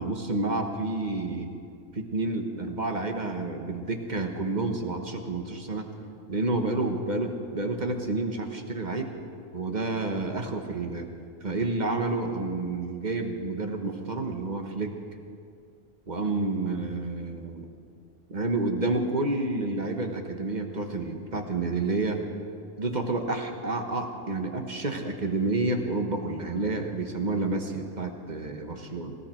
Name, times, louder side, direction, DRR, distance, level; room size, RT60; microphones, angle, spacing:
voice 1, 0.0-1.5 1.9-5.9 6.3-9.1 9.5-11.1 11.4-14.9 16.1-17.7 18.3-22.2 22.8-29.2, right 2 dB, 35° right, 4 dB, 1.2 m, -29 dB
20.0 x 15.0 x 4.5 m, 2.4 s
omnidirectional pair, 1.5 m